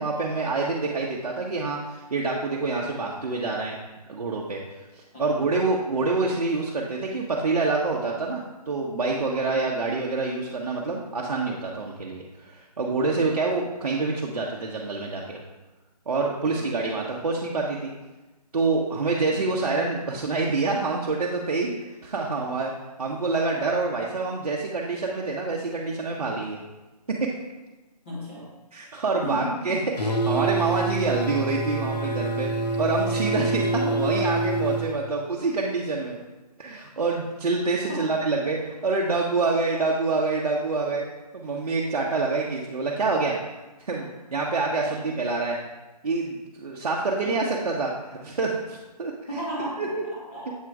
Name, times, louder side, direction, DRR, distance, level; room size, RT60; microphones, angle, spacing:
voice 1, 0.0-3.8 4.1-15.4 16.1-17.9 18.5-22.7 23.0-26.6 27.1-27.4 28.7-32.5 32.8-36.2 36.6-41.0 41.3-43.3 43.8-45.6 46.0-47.9 48.2-49.1 49.8-50.0, right 3 dB, 60° right, -3 dB, 0.9 m, -26 dB
voice 2, 5.1-5.5 13.1-13.3 16.4-16.8 19.3-19.5 22.3-22.5 28.0-28.5 29.2-29.9 37.9-38.1 42.9-43.3 44.8-45.1 47.2-47.4 49.3-50.6, equal, 20° left, -7 dB, 1.9 m, -36 dB
sound 1, 30.0-34.9, right 2 dB, 85° left, 1.0 m, -26 dB
7.4 x 3.7 x 4.6 m, 1.1 s
hypercardioid pair, 175°, 21 cm